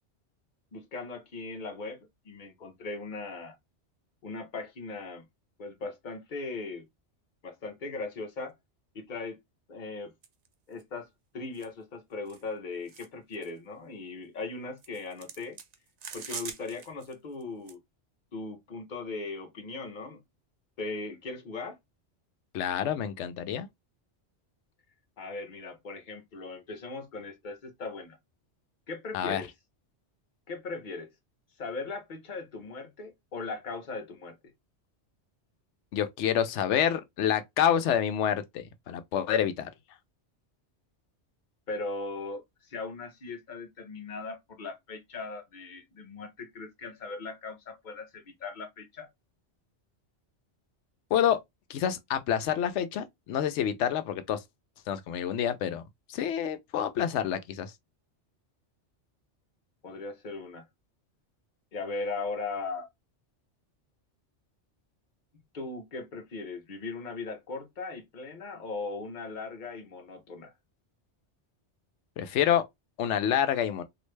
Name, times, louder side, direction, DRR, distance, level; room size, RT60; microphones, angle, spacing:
voice 1, 0.7-2.0 2.2-3.5 4.2-5.3 5.6-6.9 7.4-8.5 8.9-9.4 9.7-10.1 10.7-11.1 11.3-15.6 16.1-17.8 18.3-20.2 20.8-21.8 25.2-28.2 28.9-29.5 30.5-31.1 31.6-34.4 41.7-49.1 59.8-60.7 61.7-62.9 65.5-70.5, left 3 dB, 45° left, 0.9 m, -38 dB
sound 1, 10.2-10.5 10.8-10.9 11.5-11.7 12.3-12.4 12.9-13.1 13.3-13.5 14.8-17.1 17.4-17.7, right 6 dB, 50° right, 0.5 m, -43 dB
voice 2, 22.5-23.7 29.1-29.4 35.9-39.7 51.1-51.4 51.7-54.4 54.9-55.8 56.1-57.7 72.2-72.6 73.0-73.8, left 9 dB, 80° left, 0.9 m, -28 dB
3.1 x 2.5 x 3.2 m
omnidirectional pair, 1.2 m